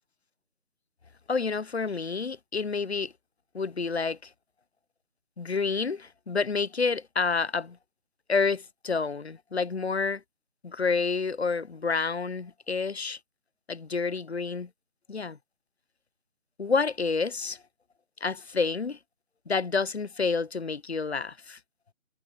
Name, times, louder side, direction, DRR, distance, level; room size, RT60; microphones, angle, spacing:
voice 1, 1.3-3.1 3.5-4.3 5.4-7.8 8.3-10.2 10.6-13.2 13.7-14.7 15.1-15.4 16.6-17.6 18.2-19.0 19.5-21.6, left 4 dB, 55° left, 0.7 m, -29 dB
figure-of-eight pair, 165°, 40 cm